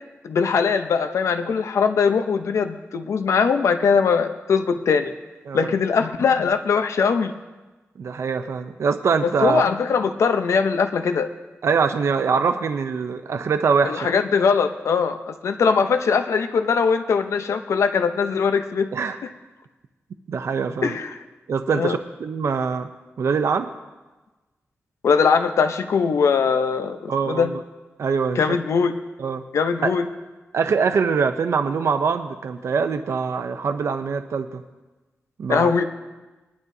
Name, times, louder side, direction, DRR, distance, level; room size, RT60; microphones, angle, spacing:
voice 1, 0.2-5.1 5.5-7.3 9.2-11.3 13.8-18.9 20.8-21.2 21.7-22.0 25.0-27.5 28.4-28.9 29.5-30.1 35.5-35.8, left 5 dB, 85° left, 8 dB, 0.7 m, -21 dB
voice 2, 8.0-9.6 11.6-14.1 18.9-19.2 20.3-20.9 21.5-22.9 23.2-23.7 27.1-27.6 28.0-28.4 29.2-29.4 30.5-34.6 35.4-35.7, right 5 dB, 75° right, 8 dB, 0.6 m, -23 dB
21.5 x 11.0 x 2.7 m, 1.2 s
wide cardioid pair, 110°, 5 cm